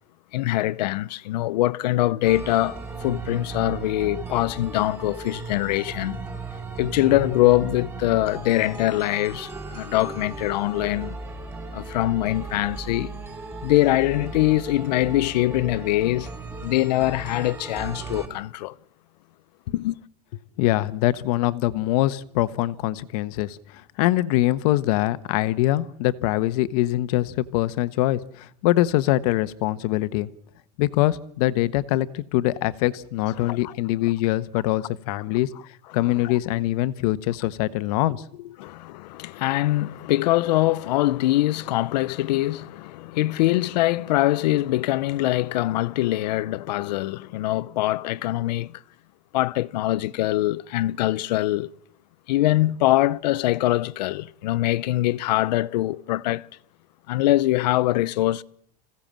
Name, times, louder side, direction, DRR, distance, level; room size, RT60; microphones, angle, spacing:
voice 1, 0.3-6.2 6.8-11.2 11.7-13.1 13.6-16.3 16.6-18.8 19.7-20.0 33.4-33.7 35.9-36.3 38.6-48.8 49.3-51.7 52.3-56.5 57.1-58.4, left 16 dB, 80° left, 0.9 m, -23 dB
sound 1, 2.3-18.3, right 4 dB, 10° right, 4.8 m, -36 dB
voice 2, 20.6-30.3 30.8-35.5 35.9-38.5, left 16 dB, 65° left, 1.2 m, -23 dB
27.0 x 16.5 x 7.5 m
supercardioid pair, 155°, 21 cm